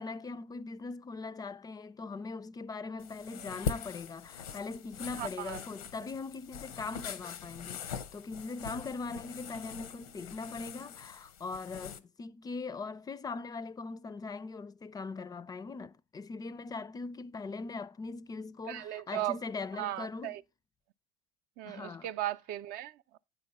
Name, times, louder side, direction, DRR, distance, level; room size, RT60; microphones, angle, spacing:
voice 1, 0.0-20.4 21.6-22.1, left 4 dB, 20° left, 0.4 m, -41 dB
sound 1, 3.0-12.0, left 7 dB, 90° left, 0.8 m, -42 dB
voice 2, 5.2-5.6 18.7-19.4 19.8-20.4 21.6-23.2, right 14 dB, 60° right, 0.5 m, -37 dB
9.0 x 4.5 x 5.3 m
supercardioid pair, 90°, 18 cm